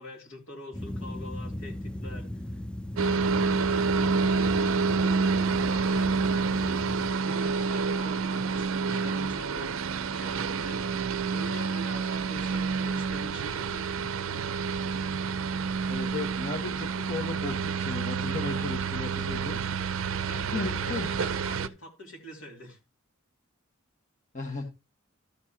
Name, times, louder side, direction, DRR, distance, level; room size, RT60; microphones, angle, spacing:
voice 1, 0.0-2.6 2.9-9.7 10.1-13.9 20.2-22.8, left 1 dB, 65° left, 3.0 m, -45 dB
sound 1, 0.7-7.1, left 1 dB, 5° left, 0.4 m, -38 dB
sound 2, 3.0-21.7, right 5 dB, 75° right, 0.5 m, -28 dB
voice 2, 15.9-19.6 20.5-21.1 24.3-24.6, left 3 dB, 40° left, 1.4 m, -35 dB
12.5 x 7.2 x 2.9 m
head